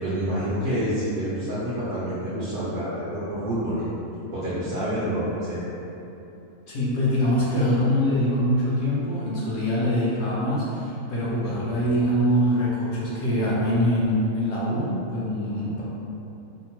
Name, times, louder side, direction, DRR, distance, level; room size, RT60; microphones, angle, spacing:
voice 1, 0.0-3.9 4.3-5.6 11.4-11.6 15.6-15.8, equal, 65° right, -10 dB, 0.8 m, -28 dB
voice 2, 6.7-15.8, equal, 65° left, -7 dB, 0.8 m, -24 dB
2.8 x 2.0 x 2.8 m, 2.9 s
omnidirectional pair, 1.4 m